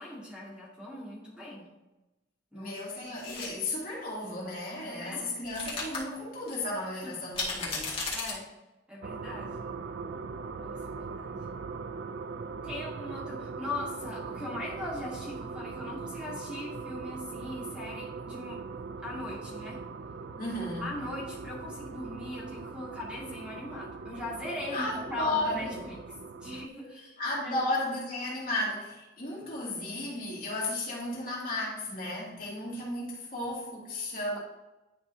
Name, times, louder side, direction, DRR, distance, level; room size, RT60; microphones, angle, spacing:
voice 1, 0.0-1.7 2.5-2.7 3.0-3.2 4.8-5.3 7.0-7.1 8.1-8.5 8.9-9.7 10.5-11.4 12.6-18.6 19.0-19.8 20.8-26.0 26.4-27.2 27.4-27.6, left 1 dB, 5° right, -6 dB, 2.1 m, -40 dB
voice 2, 2.5-8.0 20.4-21.0 24.7-25.9 27.2-34.4, left 2 dB, 50° left, -5 dB, 2.5 m, -34 dB
sound 1, 3.1-3.5 5.4-6.0 6.5-6.6 7.3-8.3, left 4 dB, 35° left, 2.0 m, -34 dB
sound 2, 9.0-26.7, right 4 dB, 75° right, 0.4 m, -40 dB
10.5 x 5.4 x 2.7 m, 1.0 s
head